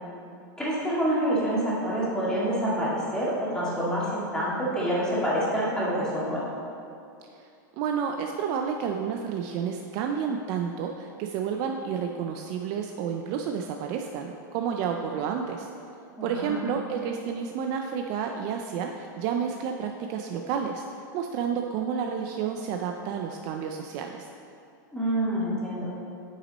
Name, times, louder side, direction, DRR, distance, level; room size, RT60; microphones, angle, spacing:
voice 1, 0.6-6.4 16.2-16.6 24.9-25.9, right 1 dB, 5° left, -8 dB, 2.0 m, -27 dB
voice 2, 7.8-15.7 16.2-24.3, right 7 dB, 40° right, 3 dB, 0.4 m, -30 dB
8.4 x 5.9 x 4.0 m, 2.6 s
supercardioid pair, 155°, 11 cm